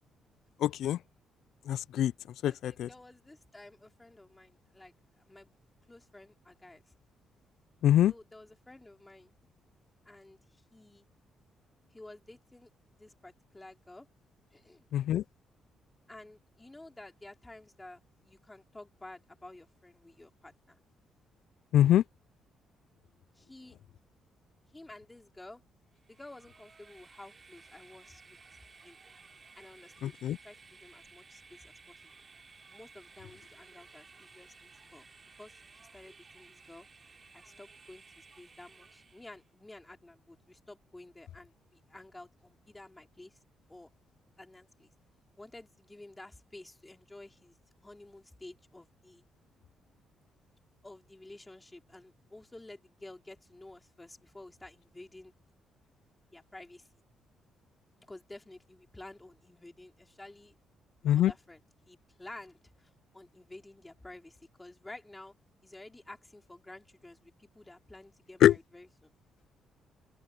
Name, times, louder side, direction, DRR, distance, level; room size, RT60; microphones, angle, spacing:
voice 1, 0.6-1.0 1.7-2.1 2.4-2.9 7.8-8.1 14.9-15.2 21.7-22.0 30.0-30.4 61.0-61.3 68.4-68.6, left 12 dB, 75° left, 0.3 m, -24 dB
voice 2, 2.5-5.5 5.9-6.8 8.0-9.3 10.1-10.4 10.7-11.1 11.9-14.1 14.5-14.9 16.1-20.8 23.4-23.8 24.7-25.6 26.1-29.0 29.6-30.1 30.4-32.0 32.7-35.1 35.4-36.9 37.3-43.4 43.7-43.9 44.4-44.9 45.4-47.6 47.8-49.2 50.8-55.3 56.3-56.9 58.0-60.6 61.0-61.6 61.9-65.3 65.6-69.1, left 2 dB, 15° left, 4.0 m, -52 dB
Train, 26.0-39.5, right 4 dB, 35° right, 6.9 m, -57 dB
open air
cardioid pair, 90°, 0 cm